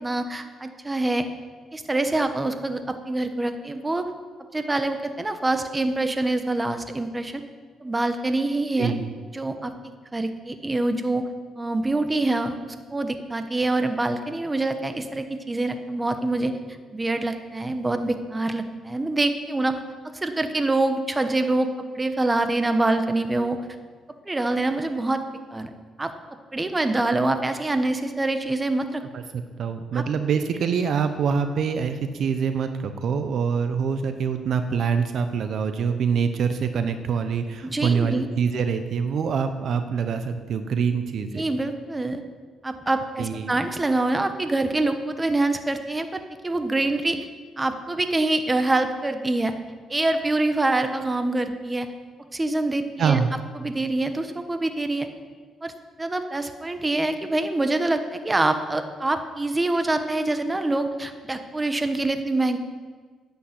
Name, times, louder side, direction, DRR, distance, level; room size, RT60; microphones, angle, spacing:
voice 1, 0.0-1.3 1.7-4.0 4.5-7.4 7.8-8.9 9.3-9.7 10.1-11.2 11.6-16.5 16.9-19.8 20.2-23.6 24.3-25.2 25.5-25.7 26.0-26.1 26.5-29.0 29.9-30.0 37.6-38.3 41.4-42.2 42.6-47.2 47.6-49.5 49.9-51.9 52.3-53.2 53.5-55.1 55.6-55.7 56.0-62.6, right 2 dB, 20° right, 8 dB, 1.2 m, -25 dB
voice 2, 8.8-9.1 29.1-41.4 43.2-43.5 53.0-53.3, right 6 dB, 65° right, 9 dB, 0.8 m, -25 dB
10.5 x 8.5 x 7.8 m, 1.5 s
cardioid pair, 90°, 0 cm